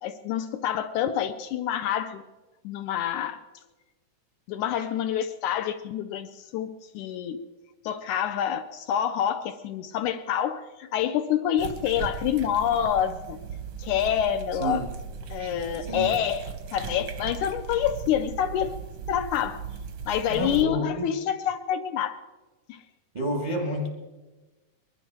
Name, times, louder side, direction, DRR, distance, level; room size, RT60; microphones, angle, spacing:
voice 1, 0.0-2.2 2.6-3.4 4.5-7.4 7.8-13.4 13.8-14.8 15.3-18.7 19.1-19.6 20.0-22.2 22.7-22.8, left 10 dB, 80° left, 8 dB, 1.8 m, -27 dB
sound 1, 11.6-20.6, right 7 dB, 70° right, 1.2 m, -38 dB
voice 2, 15.9-16.2 20.3-21.1 23.1-23.9, right 1 dB, 30° right, 0 dB, 0.7 m, -29 dB
22.0 x 11.5 x 4.6 m, 1.2 s
omnidirectional pair, 3.8 m